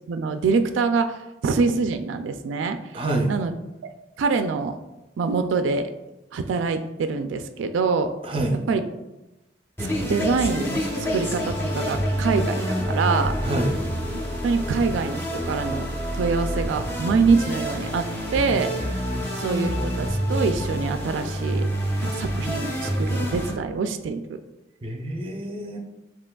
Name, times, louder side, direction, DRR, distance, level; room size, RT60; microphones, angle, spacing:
voice 1, 0.1-3.5 3.8-3.9 4.2-4.8 5.2-5.9 6.3-8.1 8.7-8.8 10.0-10.8 11.1-13.3 14.4-15.9 16.1-18.9 19.3-21.7 22.0-24.4, right 4 dB, 90° right, 8 dB, 0.3 m, -25 dB
voice 2, 2.9-3.3 8.2-8.6 13.4-13.8 24.8-25.8, right 1 dB, 30° right, 3 dB, 0.5 m, -26 dB
sound 1, 9.8-23.5, equal, 15° left, 0.8 m, -27 dB
7.4 x 2.9 x 2.3 m, 0.99 s
head